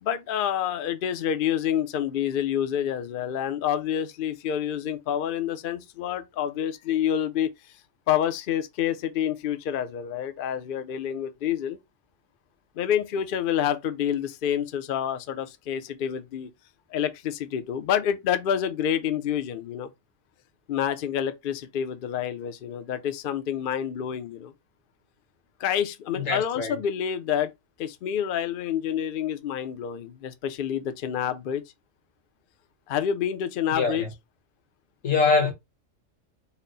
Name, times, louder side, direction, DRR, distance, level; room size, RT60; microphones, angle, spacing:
voice 1, 0.0-7.5 8.1-11.8 12.8-16.5 16.9-19.9 20.7-24.5 25.6-27.5 27.8-31.6 32.9-34.1, left 9 dB, 60° left, 0.6 m, -28 dB
voice 2, 26.2-26.7 33.7-34.1 35.0-35.5, left 4 dB, 80° left, 1.5 m, -23 dB
4.1 x 2.0 x 3.9 m
omnidirectional pair, 1.3 m